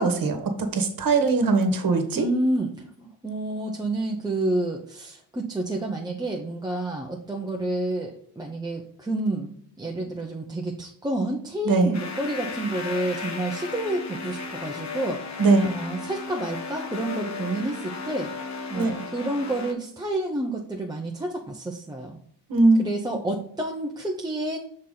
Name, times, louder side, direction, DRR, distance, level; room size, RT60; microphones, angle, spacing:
voice 1, 0.0-2.2 11.6-11.9 15.4-15.7 18.7-18.9 22.5-22.8, right 3 dB, 45° right, 6 dB, 1.5 m, -20 dB
voice 2, 2.1-9.5 9.8-15.2 15.6-18.3 18.7-22.2 22.8-24.6, right 1 dB, 10° right, -1 dB, 0.8 m, -29 dB
sound 1, 11.9-19.7, left 4 dB, 35° left, 1.1 m, -35 dB
6.0 x 4.3 x 3.8 m, 0.65 s
supercardioid pair, 80°, 46 cm